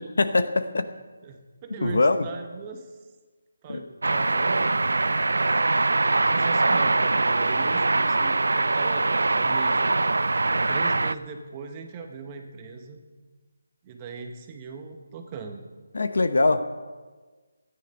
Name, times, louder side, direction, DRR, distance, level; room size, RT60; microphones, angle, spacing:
voice 1, 0.2-0.9 1.8-2.3 3.7-3.8 15.9-16.6, left 3 dB, 70° left, 10 dB, 1.0 m, -22 dB
voice 2, 1.2-3.0 3.6-5.3 6.1-9.1 9.3-10.0 10.3-13.0 13.8-15.6, right 5 dB, 15° right, 4 dB, 0.9 m, -39 dB
sound 1, 4.0-11.1, right 3 dB, 85° right, 0.4 m, -23 dB
13.5 x 9.9 x 5.4 m, 1.4 s
hypercardioid pair, 175°, 0 cm